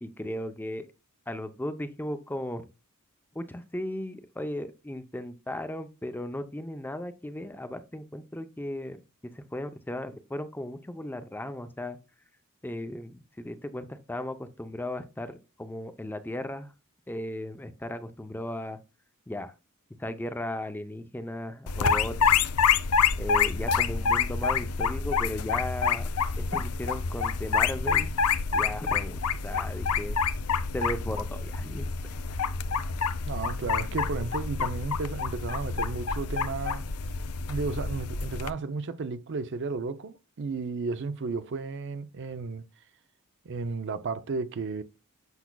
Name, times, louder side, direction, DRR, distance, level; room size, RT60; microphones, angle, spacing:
voice 1, 0.0-0.9 1.3-2.6 3.3-9.0 9.3-12.0 12.6-16.7 17.1-18.8 19.3-19.5 20.0-22.5 23.2-26.1 26.5-28.1 28.5-30.2 30.7-31.8, left 1 dB, 10° left, 0.5 m, -36 dB
sound 1, 21.7-38.5, left 6 dB, 80° left, 0.6 m, -27 dB
voice 2, 33.3-36.8 37.5-42.7 43.4-44.8, right 4 dB, 55° right, 0.5 m, -33 dB
8.1 x 5.9 x 2.2 m
head